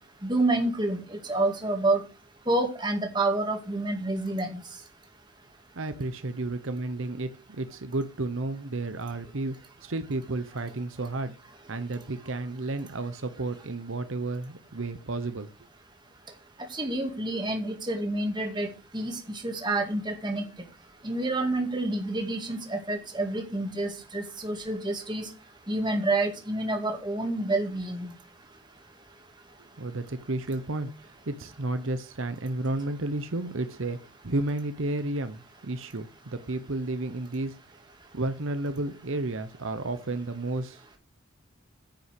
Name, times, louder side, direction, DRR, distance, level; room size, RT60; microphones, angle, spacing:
voice 1, 0.2-2.0 2.5-4.6 16.7-18.7 18.9-20.4 21.0-25.3 25.7-28.1, right 2 dB, 20° right, 2.1 m, -28 dB
voice 2, 5.7-15.5 29.6-34.0 34.2-37.6 38.1-40.8, right 2 dB, 70° right, 1.0 m, -32 dB
10.0 x 5.9 x 7.7 m
head